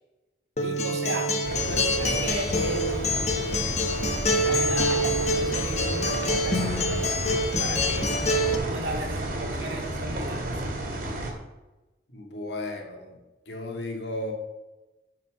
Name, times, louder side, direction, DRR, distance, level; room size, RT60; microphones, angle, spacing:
Acoustic guitar, 0.6-8.6, left 1 dB, 35° left, 1.1 m, -26 dB
voice 1, 0.6-1.3 1.7-2.8 4.3-8.1 8.4-10.6, right 1 dB, 70° right, 2 dB, 2.3 m, -36 dB
sound 1, 1.4-11.3, right 1 dB, 50° right, 2.7 m, -32 dB
voice 2, 12.1-13.2 13.5-14.3, left 1 dB, 75° left, 1 dB, 2.2 m, -34 dB
10.5 x 5.6 x 6.5 m, 1.1 s
head